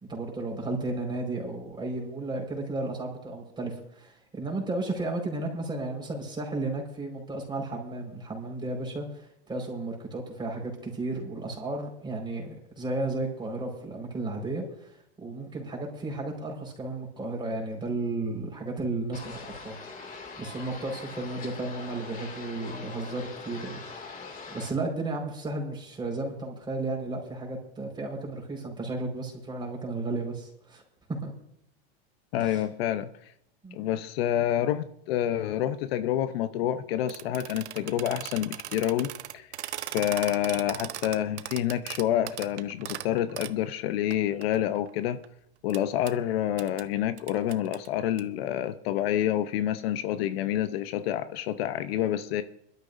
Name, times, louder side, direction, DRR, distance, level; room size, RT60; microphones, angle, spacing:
voice 1, 0.1-14.9 15.2-19.8 20.1-23.8 24.1-24.2 24.5-30.8 31.1-31.3 32.4-32.6 33.6-33.8, right 2 dB, 15° right, 1 dB, 4.8 m, -33 dB
sound 1, 19.1-24.7, left 4 dB, 25° left, 2.4 m, -42 dB
voice 2, 32.3-33.1 33.7-39.5 39.9-45.2 45.6-52.4, left 11 dB, 65° left, 11 dB, 0.8 m, -28 dB
sound 2, 37.1-43.6 44.1-44.2 44.4-45.3 45.7-45.8 46.1-46.2 46.6-46.8 47.2-48.2, right 12 dB, 85° right, 0.8 m, -38 dB
22.0 x 12.5 x 2.6 m, 0.74 s
hypercardioid pair, 125°, 33 cm